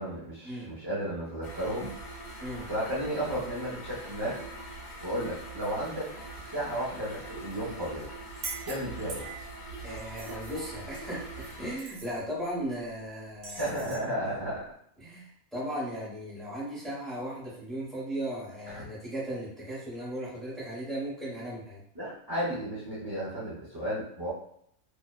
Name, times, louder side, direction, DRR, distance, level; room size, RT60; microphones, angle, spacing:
voice 1, 0.0-1.9 2.7-4.4 5.0-6.1 6.5-8.1 8.7-9.2 13.6-14.7 18.7-18.9 21.9-24.3, right 1 dB, 30° right, -10 dB, 0.4 m, -33 dB
sound 1, 1.4-11.8, right 1 dB, 75° left, 1.0 m, -43 dB
sound 2, 8.3-9.5 10.0-11.5 11.8-12.1 13.4-14.1, right 4 dB, 70° right, 0.9 m, -42 dB
voice 2, 9.8-13.9 15.0-21.8, right 1 dB, ahead, -8 dB, 0.7 m, -37 dB
2.7 x 2.0 x 2.2 m, 0.68 s
omnidirectional pair, 1.4 m